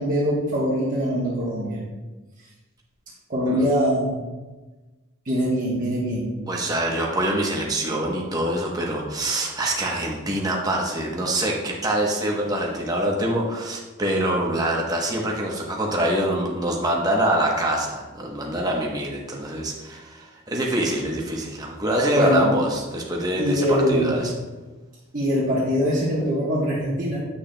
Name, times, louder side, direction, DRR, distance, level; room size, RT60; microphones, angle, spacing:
voice 1, 0.0-1.8 3.3-4.2 5.3-6.3 22.1-22.4 23.4-24.1 25.1-27.2, equal, 40° right, -7 dB, 1.0 m, -22 dB
voice 2, 6.5-24.3, right 1 dB, 20° right, -1 dB, 0.9 m, -25 dB
8.4 x 6.2 x 2.2 m, 1.2 s
head